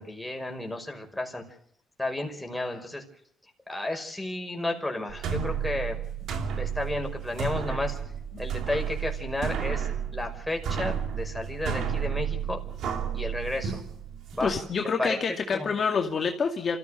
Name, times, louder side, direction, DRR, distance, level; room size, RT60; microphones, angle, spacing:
voice 1, 0.0-1.4 2.0-3.0 3.7-6.0 6.6-8.0 8.4-9.9 10.1-12.6 13.1-13.8 14.3-14.5 15.0-15.2 15.5-15.7, left 2 dB, 5° left, 3 dB, 5.7 m, -32 dB
sound 1, 5.1-14.6, right 7 dB, 75° right, 3.0 m, -32 dB
voice 2, 14.4-16.8, left 5 dB, 45° left, 3 dB, 2.4 m, -27 dB
27.0 x 15.5 x 6.5 m, 0.70 s
cardioid pair, 90°, 0 cm